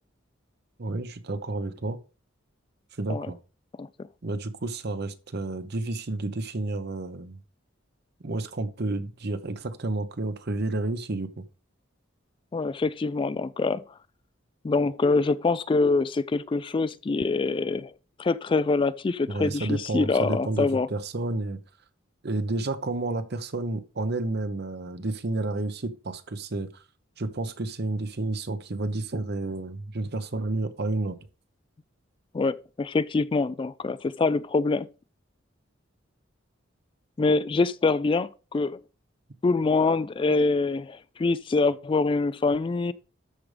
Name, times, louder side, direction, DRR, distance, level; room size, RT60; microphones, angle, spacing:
voice 1, 0.8-2.0 3.0-3.4 4.2-7.4 8.2-11.4 19.3-21.6 22.2-26.8 27.2-31.2, right 2 dB, 55° right, 0.9 m, -30 dB
voice 2, 12.5-13.8 14.6-17.9 18.2-20.9 32.3-34.9 37.2-38.8 39.4-42.9, left 3 dB, 25° left, 0.3 m, -25 dB
13.0 x 5.1 x 3.4 m
head